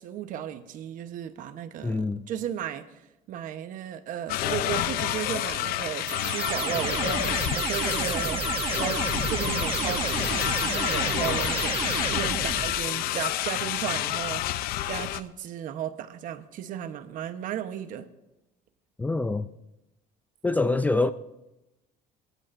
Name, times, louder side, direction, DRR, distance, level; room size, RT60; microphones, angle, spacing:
voice 1, 0.0-2.8 3.3-11.8 12.1-14.4 14.9-18.0, right 10 dB, 55° right, 1.1 m, -35 dB
voice 2, 1.8-2.2 19.0-19.5 20.4-21.1, left 3 dB, 10° left, 0.3 m, -25 dB
sound 1, 4.3-15.2, left 14 dB, 70° left, 0.6 m, -29 dB
sound 2, 6.1-12.9, right 7 dB, 35° right, 0.9 m, -31 dB
22.0 x 14.5 x 2.6 m
cardioid pair, 145°, 16 cm